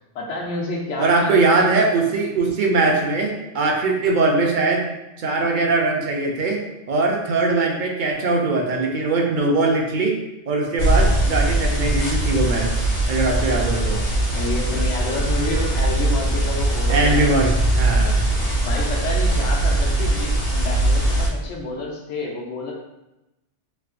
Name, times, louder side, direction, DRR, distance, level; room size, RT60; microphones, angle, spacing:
voice 1, 0.1-1.7 3.9-4.2 13.2-13.9 14.3-17.5 18.6-22.7, left 2 dB, 90° left, -1 dB, 1.0 m, -29 dB
voice 2, 1.0-4.8 5.2-6.6 6.9-10.2 10.5-14.0 16.9-17.5 17.8-18.1, right 3 dB, 55° right, 0 dB, 0.6 m, -21 dB
sound 1, 10.8-21.3, right 1 dB, 45° left, 0.5 m, -21 dB
3.3 x 2.8 x 2.4 m, 0.94 s
omnidirectional pair, 1.2 m